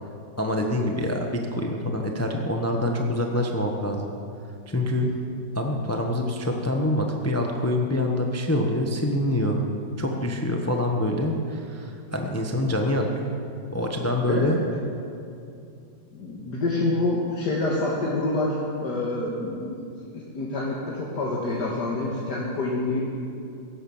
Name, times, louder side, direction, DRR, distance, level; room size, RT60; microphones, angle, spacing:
voice 1, 0.4-4.1 4.7-5.1 5.5-9.6 10.0-13.2 13.7-14.6, left 1 dB, 10° left, 2 dB, 0.9 m, -25 dB
voice 2, 16.1-19.9 20.1-23.1, left 2 dB, 65° left, -3 dB, 2.2 m, -27 dB
16.5 x 11.5 x 7.2 m, 2.5 s
omnidirectional pair, 1.9 m